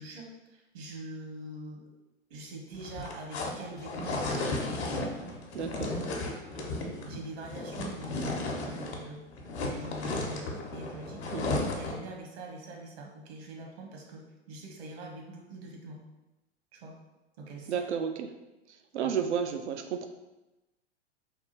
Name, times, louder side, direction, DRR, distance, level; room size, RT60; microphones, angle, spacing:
voice 1, 0.0-1.8 2.3-4.8 5.7-5.9 6.5-6.7 7.0-9.2 9.7-16.0 16.7-17.0 17.4-17.9 19.0-19.1, right 2 dB, 65° right, 0 dB, 1.1 m, -44 dB
sound 1, 2.7-9.1 9.3-12.1, left 2 dB, 70° left, 0.9 m, -34 dB
voice 2, 5.5-5.9 11.3-11.7 17.7-18.3 18.9-20.1, right 7 dB, 80° right, 7 dB, 0.5 m, -32 dB
3.6 x 2.3 x 4.2 m, 1.0 s
hypercardioid pair, 95°, 34 cm